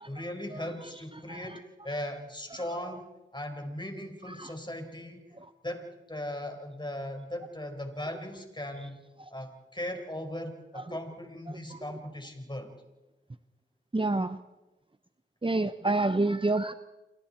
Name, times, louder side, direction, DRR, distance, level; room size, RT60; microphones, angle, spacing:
voice 1, 0.0-3.1 3.3-5.2 5.6-9.0 9.3-12.7, left 1 dB, 20° left, 5 dB, 4.9 m, -38 dB
voice 2, 0.5-0.9 1.3-1.6 4.2-4.5 9.2-9.3 10.7-11.0 11.5-11.8 13.9-14.4 15.4-16.7, right 2 dB, 25° right, 11 dB, 0.9 m, -29 dB
28.5 x 24.0 x 4.5 m, 1.1 s
cardioid pair, 40°, 21 cm